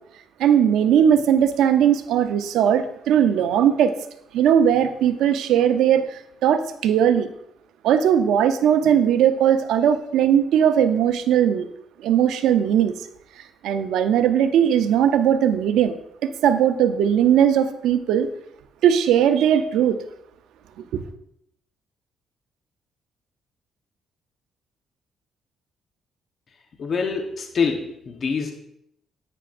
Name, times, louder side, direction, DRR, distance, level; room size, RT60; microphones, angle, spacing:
voice 1, 0.4-4.0 4.3-7.3 7.8-11.7 12.0-12.9 13.6-16.0 16.2-18.3 18.8-20.0 20.9-21.0, right 9 dB, 85° right, 9 dB, 0.7 m, -19 dB
voice 2, 26.8-28.5, left 5 dB, 50° left, 3 dB, 1.0 m, -25 dB
11.0 x 8.6 x 2.6 m, 0.76 s
cardioid pair, 90°, 0 cm